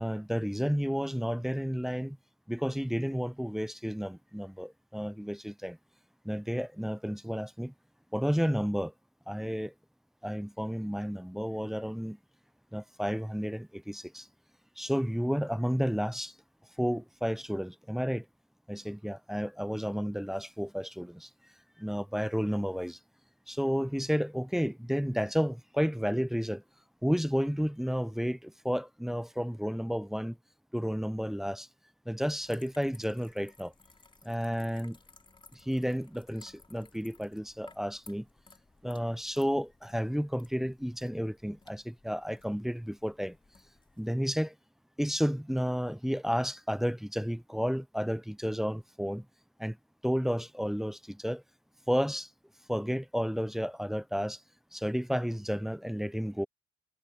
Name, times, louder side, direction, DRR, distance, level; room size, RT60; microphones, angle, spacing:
voice 1, 0.0-2.2 2.5-5.8 6.2-7.7 8.1-8.9 9.3-9.7 10.2-12.2 12.7-14.3 14.8-16.3 16.8-18.3 18.7-21.3 21.8-23.0 23.5-26.6 27.0-30.4 30.7-31.7 32.1-33.7 34.2-35.0 35.5-38.3 38.8-43.4 44.0-44.6 45.0-49.3 49.6-49.8 50.0-51.4 51.9-52.3 52.7-54.4 54.7-56.5, equal, ahead, 0.4 m, -31 dB
sound 1, 32.2-44.1, left 3 dB, 25° left, 4.2 m, -59 dB
cardioid pair, 90°, 20 cm